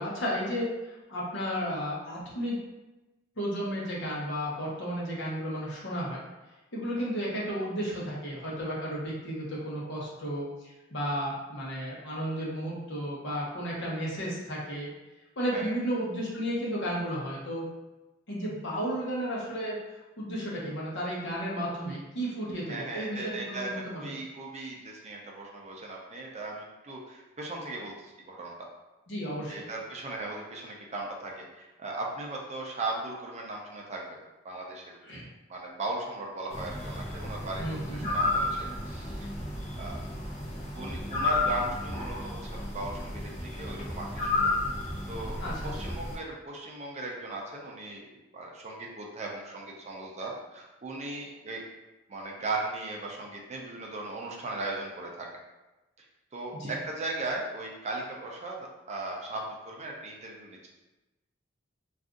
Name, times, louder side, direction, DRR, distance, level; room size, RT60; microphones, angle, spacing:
voice 1, 0.0-2.6 3.4-6.2 6.7-14.9 15.4-17.7 18.3-19.8 20.2-24.2 29.1-29.7 35.0-35.2 37.6-38.1 45.4-45.7 56.5-56.7, equal, 65° left, -5 dB, 0.9 m, -33 dB
voice 2, 22.7-28.5 29.5-34.2 34.4-39.3 39.8-40.0 40.8-44.5 45.1-51.6 52.1-55.3 56.0-56.1 56.3-60.7, right 2 dB, 35° right, -1 dB, 0.5 m, -37 dB
sound 1, 36.5-46.2, left 2 dB, 35° left, 0.8 m, -32 dB
2.5 x 2.4 x 3.6 m, 1.1 s
head